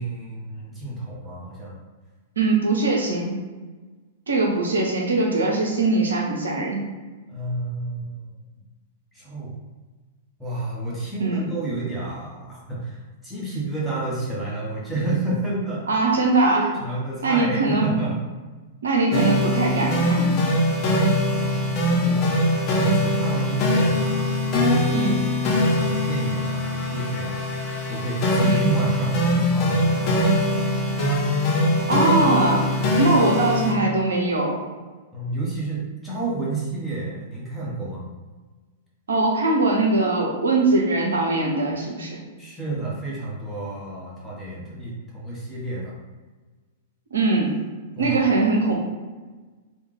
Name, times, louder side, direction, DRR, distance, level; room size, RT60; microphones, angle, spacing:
voice 1, 0.0-1.8 7.3-8.3 9.1-9.6 10.4-15.9 16.5-18.2 21.4-22.3 22.7-24.4 24.7-25.1 25.5-30.6 35.1-38.1 42.4-45.9 47.9-48.2, right 2 dB, ahead, -8 dB, 1.2 m, -31 dB
voice 2, 2.4-3.3 4.3-6.8 11.2-11.4 15.9-16.7 17.2-17.9 18.8-20.4 24.9-25.2 28.4-28.7 31.9-32.7 32.9-34.6 39.1-42.2 47.1-47.6 48.0-48.7, right 2 dB, 70° right, 0 dB, 0.5 m, -21 dB
sound 1, 19.1-33.7, left 1 dB, 35° left, 0.7 m, -22 dB
3.5 x 2.3 x 3.2 m, 1.3 s
figure-of-eight pair, 100°, 0 cm